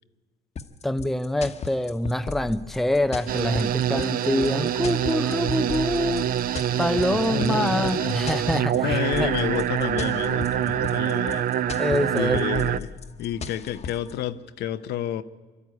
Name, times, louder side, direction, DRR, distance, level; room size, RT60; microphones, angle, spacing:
sound 1, 0.6-14.1, left 6 dB, 40° left, 1.2 m, -36 dB
voice 1, 0.8-6.3 6.8-9.3 10.7-10.8 11.8-12.5, left 1 dB, ahead, 0.6 m, -25 dB
sound 2, 3.3-12.8, right 10 dB, 60° right, 0.6 m, -25 dB
voice 2, 7.1-8.2 8.8-11.5 12.2-12.9 13.2-15.2, left 11 dB, 75° left, 0.9 m, -30 dB
25.5 x 12.5 x 9.6 m
cardioid pair, 110°, 17 cm